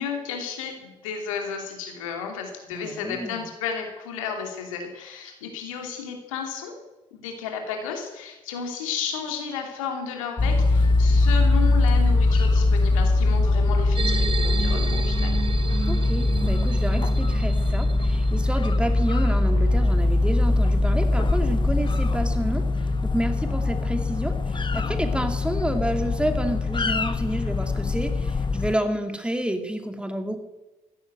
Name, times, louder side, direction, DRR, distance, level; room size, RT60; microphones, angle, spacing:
voice 1, 0.0-6.7 7.1-15.4, left 6 dB, 85° left, 3 dB, 2.8 m, -33 dB
voice 2, 2.7-3.4 15.9-30.4, right 1 dB, 5° right, 6 dB, 2.8 m, -29 dB
sound 1, 10.4-28.8, left 2 dB, 30° left, 1.3 m, -22 dB
sound 2, 13.9-18.7, right 4 dB, 30° right, 1.1 m, -33 dB
15.0 x 10.0 x 8.1 m, 1.1 s
hypercardioid pair, 50°, 17 cm